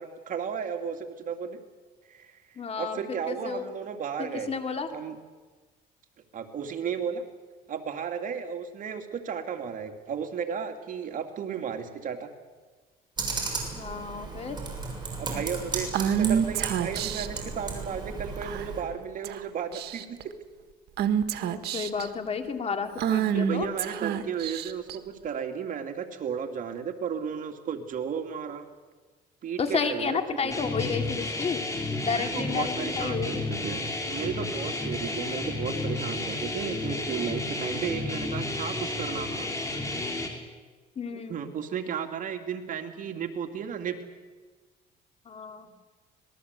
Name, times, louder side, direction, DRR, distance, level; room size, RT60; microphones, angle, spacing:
voice 1, 0.0-1.6 2.1-2.4 2.8-4.5 4.9-5.2 6.3-7.2 7.7-12.3 15.2-20.2 23.3-28.7 29.4-30.5 32.1-39.5 41.1-44.0, right 7 dB, 50° right, 5 dB, 2.7 m, -34 dB
voice 2, 2.6-3.6 4.2-4.9 13.7-14.6 21.4-23.7 29.6-31.6 32.0-33.4 41.0-41.4 45.3-45.7, left 5 dB, 35° left, 6 dB, 2.7 m, -31 dB
Computer keyboard, 13.2-18.8, right 4 dB, 25° right, 7.2 m, -35 dB
Female speech woman speaking / Whispering, 15.9-17.4 18.4-18.8 19.2-19.4 19.7-20.2 21.0-22.1 23.0-25.0, right 9 dB, 75° right, 1.5 m, -27 dB
sound 1, 30.5-40.3, left 2 dB, 20° left, 4.8 m, -32 dB
26.0 x 20.0 x 8.3 m, 1.4 s
cardioid pair, 110°, 17 cm